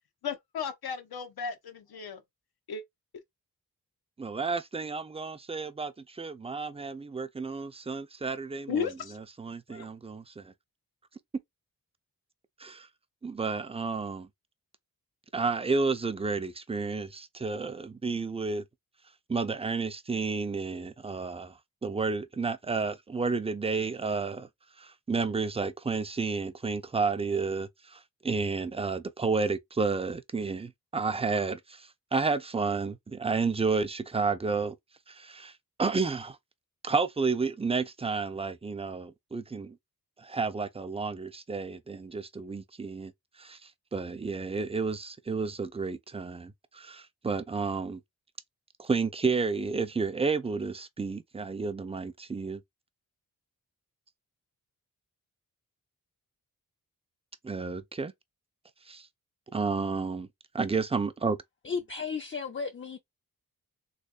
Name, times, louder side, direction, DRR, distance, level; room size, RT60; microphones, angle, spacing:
voice 1, 0.2-2.2 2.7-2.8 8.7-9.2 9.7-9.9, left 6 dB, 90° left, 1.0 m, -34 dB
voice 2, 4.2-8.9 9.1-10.5 12.6-12.9 13.2-14.3 15.3-18.6 19.3-24.5 24.8-34.8 35.1-36.4 36.8-39.8 40.2-43.1 43.4-48.0 48.8-52.6 57.4-58.1 58.9-59.1 59.5-60.3 60.5-61.4, right 4 dB, 15° right, 0.4 m, -31 dB
voice 3, 61.6-63.0, left 5 dB, 35° left, 0.5 m, -34 dB
3.4 x 3.3 x 2.4 m
wide cardioid pair, 100°, 36 cm